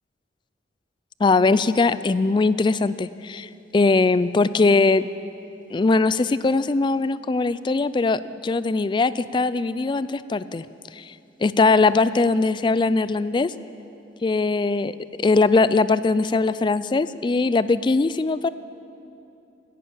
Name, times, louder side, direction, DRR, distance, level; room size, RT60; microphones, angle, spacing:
voice 1, 1.2-5.1 5.7-10.6 10.9-11.1 11.4-13.5 14.2-18.5, left 3 dB, 25° left, 16 dB, 0.3 m, -21 dB
14.0 x 11.0 x 8.6 m, 2.8 s
head